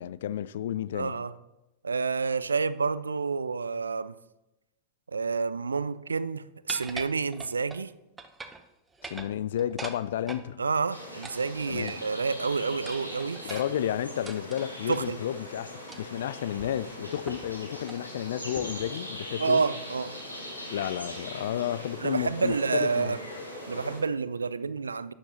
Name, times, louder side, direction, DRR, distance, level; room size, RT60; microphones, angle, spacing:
voice 1, 0.0-1.1 9.0-10.6 11.7-12.0 13.4-19.6 20.7-22.6 22.8-23.1, left 10 dB, 60° left, 0.3 m, -32 dB
voice 2, 0.9-1.3 1.8-4.1 5.1-7.9 10.6-13.6 14.9-15.2 19.4-20.2 22.0-23.2 23.7-25.1, right 4 dB, 75° right, 0.4 m, -29 dB
sound 1, 6.7-7.8 8.2-8.7 8.9-10.5 11.2-12.2 12.9-15.1 15.9-16.2 16.6-16.7 17.3-17.5 17.8-18.1 18.6-18.9, right 3 dB, 15° right, 0.8 m, -43 dB
sound 2, 10.9-24.0, left 1 dB, 85° left, 2.3 m, -41 dB
12.0 x 9.7 x 3.0 m
figure-of-eight pair, 90°, 0 cm